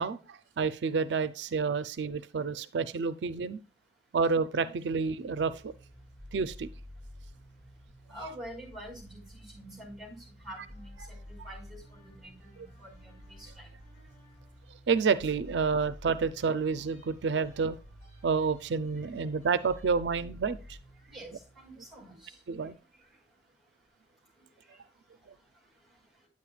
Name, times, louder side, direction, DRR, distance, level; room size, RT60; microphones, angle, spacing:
voice 1, 0.0-3.6 4.1-5.7 6.3-6.7 14.9-17.8 18.2-20.8 22.5-22.7, right 5 dB, 85° right, 13 dB, 0.5 m, -29 dB
sound 1, 5.1-22.4, equal, 15° left, 3.7 m, -51 dB
voice 2, 8.1-10.9 11.3-13.7 21.1-22.4 24.7-24.8, right 1 dB, ahead, 0 dB, 5.1 m, -47 dB
9.5 x 8.3 x 2.4 m, 0.33 s
head